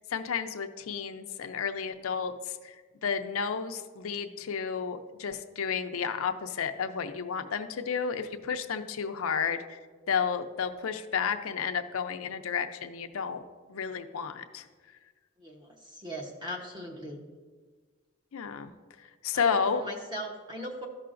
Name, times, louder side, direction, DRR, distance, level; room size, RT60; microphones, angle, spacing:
voice 1, 0.0-2.8 3.0-9.8 10.1-13.4 13.7-14.7 18.3-18.7 19.2-19.8, left 6 dB, 85° left, 7 dB, 0.5 m, -32 dB
voice 2, 15.4-17.2 19.3-20.9, equal, 20° right, 1 dB, 0.9 m, -39 dB
13.0 x 5.7 x 2.5 m, 1.4 s
head